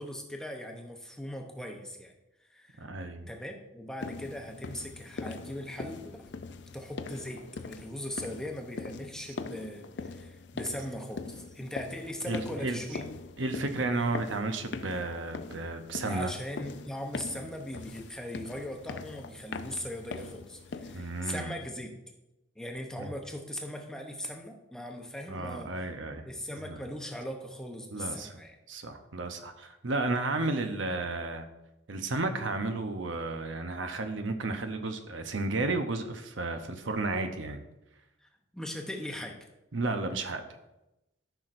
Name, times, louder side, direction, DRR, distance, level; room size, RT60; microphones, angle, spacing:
voice 1, 0.0-2.1 2.4-2.9 3.3-6.2 6.7-13.1 16.1-22.1 22.6-25.8 26.2-28.6 38.2-39.5, left 1 dB, 5° left, 2 dB, 0.8 m, -39 dB
voice 2, 2.8-3.3 12.3-12.8 13.4-16.3 20.9-21.6 23.0-23.1 25.3-26.2 26.6-26.8 27.9-28.4 28.7-31.5 31.9-37.6 39.7-40.4, right 2 dB, 70° right, 7 dB, 0.8 m, -33 dB
sound 1, 4.0-21.3, left 4 dB, 60° left, 0.4 m, -42 dB
13.5 x 5.9 x 2.6 m, 0.94 s
head